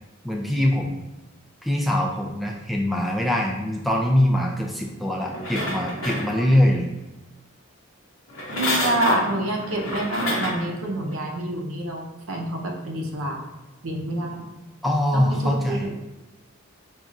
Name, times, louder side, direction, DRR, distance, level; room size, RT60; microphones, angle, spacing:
voice 1, 0.2-1.0 1.6-6.8 14.8-15.9, left 1 dB, ahead, 0 dB, 0.3 m, -23 dB
sound 1, 5.2-6.7 8.3-10.7 11.3-11.4, left 1 dB, 70° left, 0.7 m, -28 dB
voice 2, 8.5-13.4 13.8-14.4 15.1-15.9, right 1 dB, 80° right, 0 dB, 0.6 m, -27 dB
4.0 x 2.3 x 2.5 m, 1.1 s
head